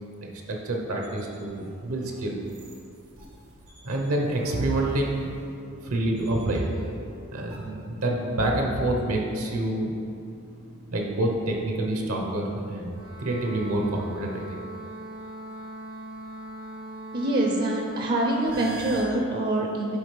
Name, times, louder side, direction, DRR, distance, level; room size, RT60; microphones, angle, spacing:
voice 1, 0.2-2.4 3.8-5.3 5.8-6.7 7.3-9.9 10.9-14.6, right 1 dB, 70° right, 0 dB, 0.9 m, -27 dB
sound 1, 1.0-19.0, right 1 dB, 85° right, 1.5 m, -43 dB
voice 2, 17.1-20.0, right 1 dB, 45° right, 0 dB, 0.6 m, -25 dB
11.0 x 3.7 x 3.3 m, 2.5 s
head